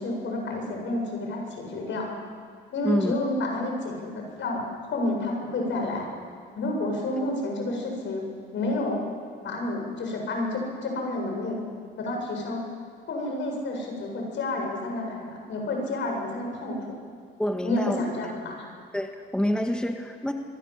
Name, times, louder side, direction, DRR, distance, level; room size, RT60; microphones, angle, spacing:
voice 1, 0.0-2.1 2.7-6.1 6.5-8.2 8.5-9.1 9.4-11.6 12.0-12.6 13.1-17.0 17.6-18.7, left 2 dB, 70° left, 1 dB, 7.8 m, -30 dB
voice 2, 17.4-18.0 18.9-20.3, equal, 5° left, 4 dB, 1.8 m, -27 dB
26.5 x 23.0 x 7.8 m, 2.1 s
cardioid pair, 90°, 20 cm